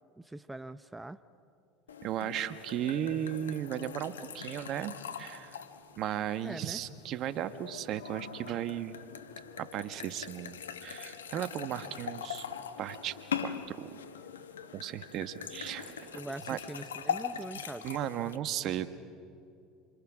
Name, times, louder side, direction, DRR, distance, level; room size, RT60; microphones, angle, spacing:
voice 1, 0.2-1.2 6.4-6.8 16.1-17.9, right 2 dB, 10° right, 12 dB, 0.7 m, -42 dB
sound 1, 1.9-18.4, left 7 dB, 90° left, 1.1 m, -42 dB
voice 2, 2.0-5.6 6.0-9.0 9.6-12.5 12.8-14.0 14.7-16.2 16.5-16.6 17.8-18.9, right 11 dB, 55° right, 12 dB, 1.2 m, -36 dB
27.0 x 26.5 x 6.2 m, 2.6 s
hypercardioid pair, 80°, 0 cm